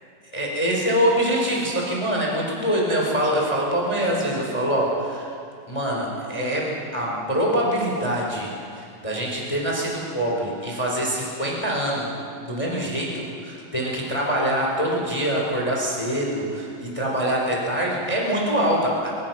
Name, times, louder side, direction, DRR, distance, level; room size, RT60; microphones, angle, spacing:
voice 1, 0.3-5.3 5.7-12.1 12.4-19.1, right 1 dB, 10° left, -2 dB, 4.0 m, -24 dB
24.0 x 20.5 x 6.0 m, 2.4 s
omnidirectional pair, 4.4 m